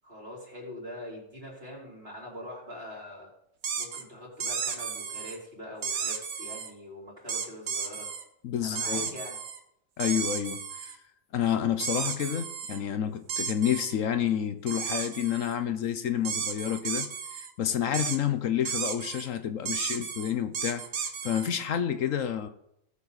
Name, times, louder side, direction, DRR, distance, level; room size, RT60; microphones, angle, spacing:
voice 1, 0.0-3.3 3.8-8.1 8.6-9.4, left 1 dB, 45° right, 4.2 m, -43 dB
sound 1, 3.6-4.0 4.4-5.4 5.8-6.7 7.3-8.2 8.8-9.6 10.0-11.0 11.8-12.8 13.3-13.9 14.7-15.6 16.2-17.5 17.9-18.2 18.7-19.3 19.7-21.5, right 6 dB, 80° right, 1.5 m, -33 dB
voice 2, 8.4-9.1 10.0-11.0 11.3-17.1 17.4-22.5, left 9 dB, 70° left, 1.2 m, -29 dB
18.0 x 7.4 x 4.1 m
omnidirectional pair, 1.4 m